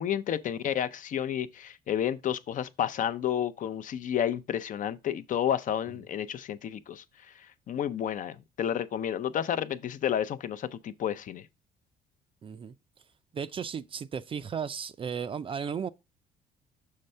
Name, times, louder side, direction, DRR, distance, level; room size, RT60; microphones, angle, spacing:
voice 1, 0.0-11.5, left 9 dB, 50° left, 0.6 m, -31 dB
voice 2, 12.4-12.7 13.3-15.9, right 7 dB, 30° right, 0.4 m, -35 dB
6.7 x 3.3 x 5.4 m
cardioid pair, 110°, 17 cm